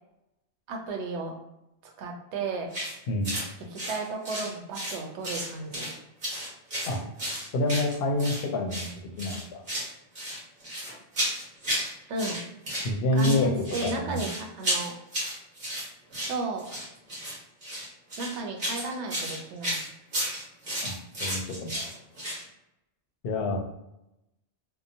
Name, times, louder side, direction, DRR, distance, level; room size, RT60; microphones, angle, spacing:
voice 1, 0.7-1.3 1.8-2.7 3.7-5.9 12.1-12.4 13.1-15.0 16.2-16.7 18.2-19.8, right 2 dB, 80° right, 2 dB, 0.9 m, -34 dB
sound 1, 2.7-2.9 3.2-3.5 3.7-5.0 5.2-5.9 6.2-8.4 8.7-8.9 9.2-9.9 10.1-11.9 12.2-12.9 13.2-22.4, equal, 50° right, 1.2 m, -33 dB
voice 2, 3.1-3.4 6.9-7.0 7.5-8.9 9.2-9.6 12.8-13.5 13.8-14.2 20.8-21.9 23.2-23.6, left 1 dB, 65° left, 3 dB, 0.7 m, -27 dB
2.8 x 2.0 x 2.6 m, 0.88 s
omnidirectional pair, 1.2 m